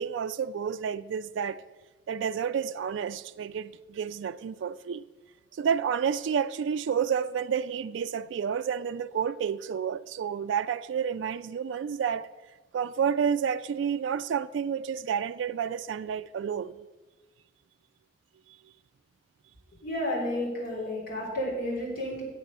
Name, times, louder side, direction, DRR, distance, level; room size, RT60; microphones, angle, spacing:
voice 1, 0.0-1.6 2.1-5.0 5.5-12.3 12.7-16.7, right 7 dB, 80° right, 0.3 m, -30 dB
voice 2, 19.8-22.2, left 1 dB, 50° left, 3.7 m, -31 dB
7.8 x 7.4 x 6.6 m
head